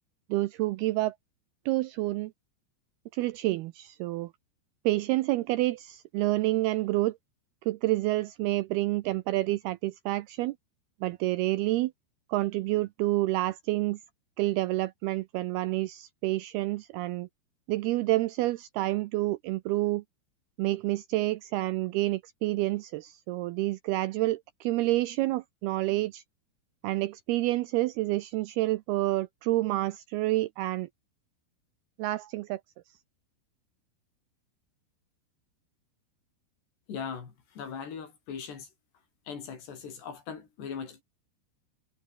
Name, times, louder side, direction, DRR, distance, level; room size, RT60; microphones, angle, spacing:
voice 1, 0.3-1.1 1.7-2.3 3.1-4.3 4.8-7.2 7.7-10.6 11.0-11.9 12.3-14.0 14.4-17.3 17.7-20.0 20.6-26.2 26.8-30.9 32.0-32.6, right 18 dB, 85° right, 2.3 m, -28 dB
voice 2, 36.9-38.7 39.3-41.0, left 6 dB, 65° left, 6.5 m, -39 dB
omnidirectional pair, 5.2 m